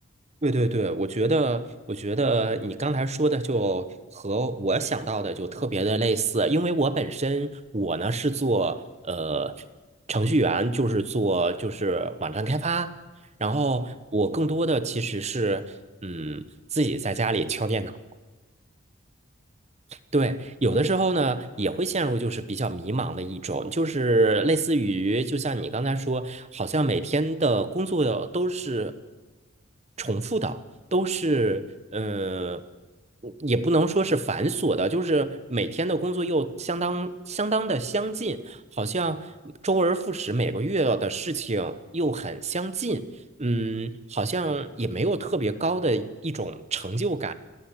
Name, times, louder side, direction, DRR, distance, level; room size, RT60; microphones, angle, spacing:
voice 1, 0.4-9.5 10.1-12.9 13.4-15.6 16.0-16.4 16.7-18.0 20.1-29.0 30.0-30.6 30.9-31.6 31.9-32.6 33.2-39.3 39.6-43.1 43.4-47.3, right 2 dB, 35° right, 13 dB, 1.2 m, -26 dB
20.0 x 18.0 x 9.0 m, 1.3 s
head